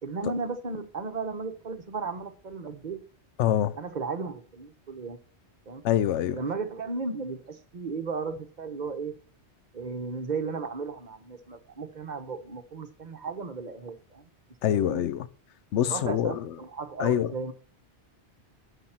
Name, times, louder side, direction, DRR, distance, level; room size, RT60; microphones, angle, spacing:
voice 1, 0.0-3.0 3.8-5.2 5.7-5.8 6.3-9.1 9.7-14.3 14.7-15.1 15.9-17.5, right 4 dB, 45° right, 1.0 m, -35 dB
voice 2, 3.4-3.7 5.8-6.4 14.6-15.3 15.7-16.3 17.0-17.3, left 11 dB, 90° left, 0.9 m, -25 dB
9.4 x 5.7 x 4.3 m
omnidirectional pair, 1.2 m